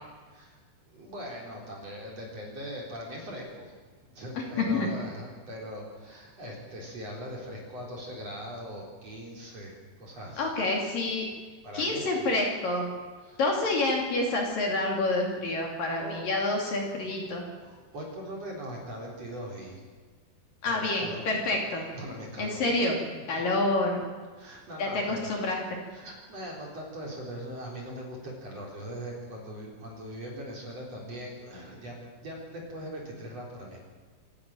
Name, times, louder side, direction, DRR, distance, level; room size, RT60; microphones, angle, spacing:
voice 1, 0.9-3.7 4.0-10.5 11.6-12.3 13.2-13.4 16.0-16.2 16.9-17.2 17.6-19.8 20.6-21.2 21.5-21.6 21.9-22.6 23.1-23.4 24.4-25.3 25.9-33.8, equal, 35° right, -2 dB, 4.7 m, -41 dB
voice 2, 4.4-4.9 10.4-11.3 11.7-12.8 13.4-17.4 20.6-21.8 22.4-23.0 23.3-24.0 24.8-25.8, left 2 dB, 50° left, 0 dB, 3.9 m, -28 dB
27.0 x 12.0 x 9.0 m, 1.5 s
omnidirectional pair, 5.4 m